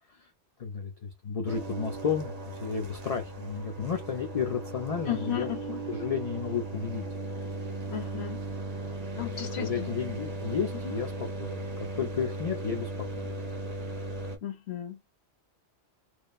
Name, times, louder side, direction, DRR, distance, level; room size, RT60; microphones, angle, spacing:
voice 1, 0.6-5.5 5.9-7.1 9.2-9.3 9.6-11.1 11.4-13.4, left 6 dB, 50° left, 0.4 m, -32 dB
sound 1, 1.5-14.4, right 2 dB, 45° right, 0.7 m, -37 dB
voice 2, 5.1-5.8 7.9-8.4 9.2-9.9 10.7-10.9 14.4-15.1, left 11 dB, 75° left, 1.1 m, -35 dB
3.0 x 2.1 x 2.3 m
omnidirectional pair, 1.1 m